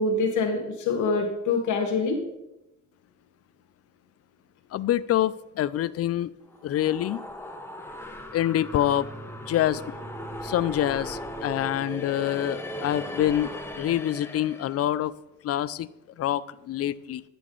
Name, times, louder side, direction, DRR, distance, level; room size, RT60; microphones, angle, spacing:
voice 1, 0.0-2.2, left 3 dB, 75° left, 2 dB, 1.3 m, -25 dB
voice 2, 4.7-6.3 6.6-7.2 8.3-9.1 9.5-9.8 10.4-15.1 15.4-15.9 16.2-17.2, left 12 dB, 55° left, 17 dB, 0.4 m, -26 dB
sound 1, 6.5-14.8, equal, 10° left, 0.9 m, -38 dB
9.3 x 6.9 x 3.8 m, 0.91 s
cardioid pair, 90°, 30 cm